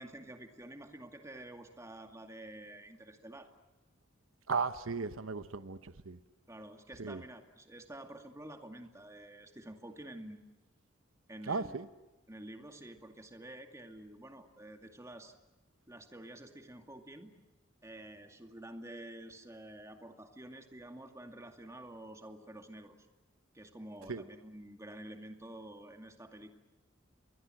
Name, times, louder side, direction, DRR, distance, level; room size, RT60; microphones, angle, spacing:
voice 1, 0.0-3.5 6.5-10.5 11.3-11.7 12.3-15.3 15.9-17.3 17.8-23.1 23.5-26.6, right 1 dB, 15° right, 5 dB, 2.3 m, -49 dB
voice 2, 4.5-6.2 7.0-7.2 11.5-11.9 24.1-24.2, right 4 dB, 85° right, 11 dB, 1.0 m, -36 dB
28.5 x 23.0 x 7.8 m, 1.1 s
head